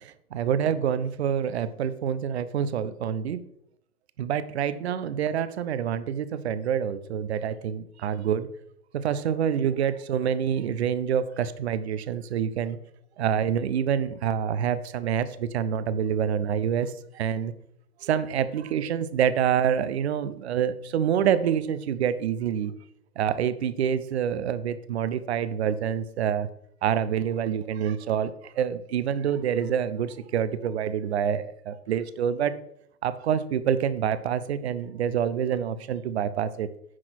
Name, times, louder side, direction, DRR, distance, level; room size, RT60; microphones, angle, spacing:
voice 1, 0.0-3.4 4.2-8.5 8.9-12.8 13.2-17.5 18.0-22.7 23.2-26.5 26.8-32.5 33.0-36.7, right 8 dB, 45° right, 14 dB, 0.8 m, -27 dB
9.7 x 5.8 x 5.9 m, 0.71 s
figure-of-eight pair, 120°, 47 cm